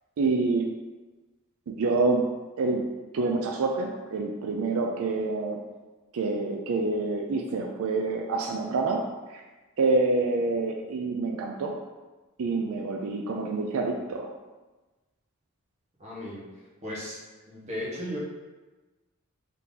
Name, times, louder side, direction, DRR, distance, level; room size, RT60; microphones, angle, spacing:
voice 1, 0.2-0.8 1.7-2.3 2.6-5.6 6.1-9.4 9.8-11.8 12.4-14.3, right 3 dB, 80° right, 1 dB, 0.4 m, -27 dB
voice 2, 16.0-16.5 16.8-17.2 17.5-18.2, equal, 30° right, -5 dB, 1.1 m, -35 dB
3.7 x 2.8 x 3.7 m, 1.2 s
head